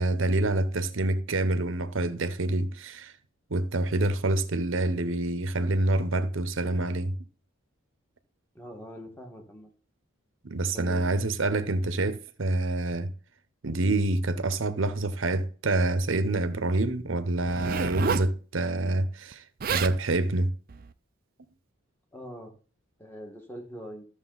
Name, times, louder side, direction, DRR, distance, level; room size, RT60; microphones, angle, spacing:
voice 1, 0.0-3.1 3.5-7.2 10.4-13.1 13.6-19.4 19.7-20.5, right 2 dB, 75° right, 0.9 m, -27 dB
voice 2, 8.5-9.7 10.7-11.1 22.1-22.6 23.0-24.1, equal, 10° left, 1.7 m, -42 dB
Zipper (clothing), 17.4-18.3 19.3-19.4 19.6-20.0 20.7-20.9, right 5 dB, 45° right, 0.5 m, -30 dB
13.0 x 6.6 x 4.0 m
head